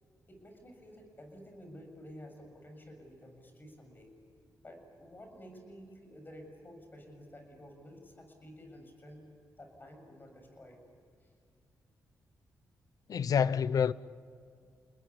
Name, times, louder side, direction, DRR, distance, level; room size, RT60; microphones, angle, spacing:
voice 1, 0.3-4.1 4.6-9.3 9.6-10.8 11.2-11.3, equal, 30° left, 7.1 m, -51 dB
voice 2, 13.1-13.9, left 7 dB, 65° left, 0.8 m, -27 dB
30.0 x 20.5 x 8.5 m
cardioid pair, 85°, 7 cm